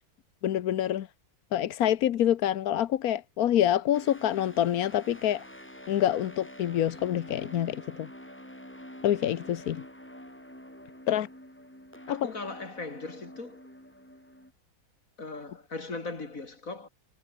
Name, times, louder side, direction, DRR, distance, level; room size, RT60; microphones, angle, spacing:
voice 1, 0.4-1.1 1.5-5.4 5.9-8.1 9.0-9.8 11.1-11.3 12.1-12.3, left 11 dB, 60° left, 1.1 m, -26 dB
sound 1, 3.9-14.5, equal, 5° left, 4.4 m, -47 dB
voice 2, 12.1-13.6 15.2-16.9, left 3 dB, 45° left, 4.0 m, -39 dB
omnidirectional pair, 2.1 m